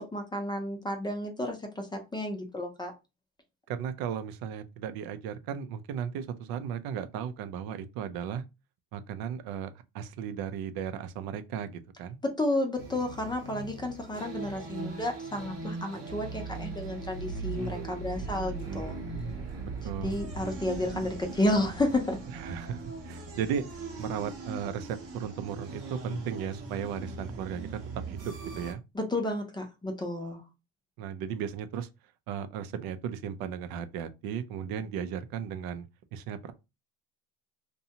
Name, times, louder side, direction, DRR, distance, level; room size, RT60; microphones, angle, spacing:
voice 1, 0.0-1.9 2.1-2.9 12.4-19.0 20.0-22.2 28.9-30.4, left 1 dB, 10° left, 0.5 m, -31 dB
voice 2, 3.7-8.4 8.9-12.2 19.8-20.2 22.3-23.6 24.0-27.8 28.1-28.8 31.0-31.9 32.3-35.9 36.1-36.5, right 8 dB, 70° right, 0.5 m, -35 dB
sound 1, 12.8-28.7, right 3 dB, 40° right, 0.8 m, -39 dB
2.7 x 2.2 x 2.8 m
cardioid pair, 115°, 37 cm